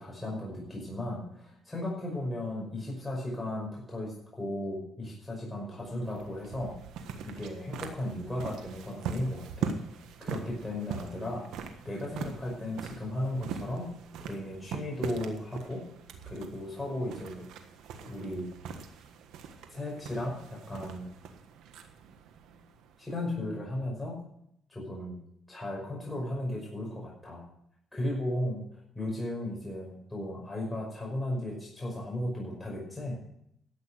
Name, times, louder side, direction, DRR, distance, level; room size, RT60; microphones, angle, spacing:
voice 1, 0.0-6.7 7.2-13.9 14.3-15.8 16.3-17.5 18.0-18.5 19.7-21.1 23.0-24.2 24.7-25.1 25.5-27.4 27.9-28.6 28.9-33.2, left 1 dB, 10° left, -3 dB, 5.6 m, -35 dB
sound 1, 5.7-23.4, right 6 dB, 85° right, 1.4 m, -42 dB
12.5 x 8.7 x 6.4 m, 0.73 s
cardioid pair, 90°, 0 cm